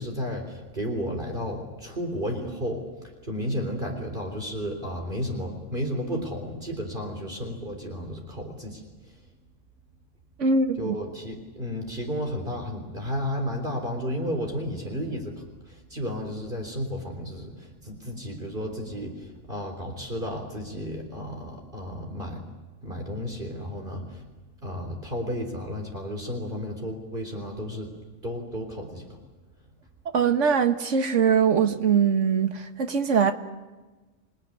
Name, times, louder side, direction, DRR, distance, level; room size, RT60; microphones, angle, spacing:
voice 1, 0.0-2.8 3.2-8.8 10.8-22.4 22.8-24.2 24.6-27.9 28.2-29.2, equal, 45° right, 3.9 m, -33 dB
voice 2, 10.4-11.0 30.1-33.3, right 6 dB, 75° right, 1.7 m, -22 dB
28.5 x 19.0 x 9.8 m
omnidirectional pair, 1.3 m